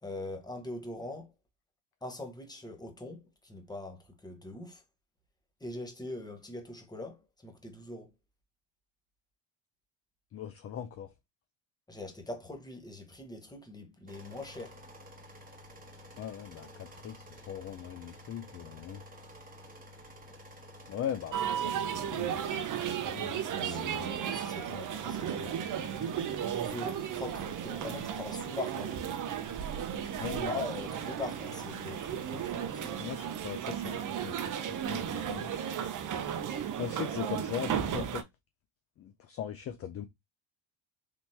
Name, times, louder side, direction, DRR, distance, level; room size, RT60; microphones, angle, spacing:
voice 1, 0.0-1.3 2.0-4.8 5.6-8.1 11.9-14.8 23.5-25.6 26.5-29.1 30.5-32.9, left 2 dB, 10° left, 0.9 m, -42 dB
voice 2, 10.3-11.1 16.2-19.0 20.9-24.2 30.2-30.6 33.0-34.5 34.8-35.5 36.8-38.2 39.0-40.1, left 9 dB, 35° left, 0.3 m, -40 dB
sound 1, 14.1-32.5, equal, 15° right, 1.1 m, -51 dB
sound 2, 21.3-38.2, right 9 dB, 40° right, 0.6 m, -34 dB
3.4 x 2.8 x 2.7 m
supercardioid pair, 90°, 49 cm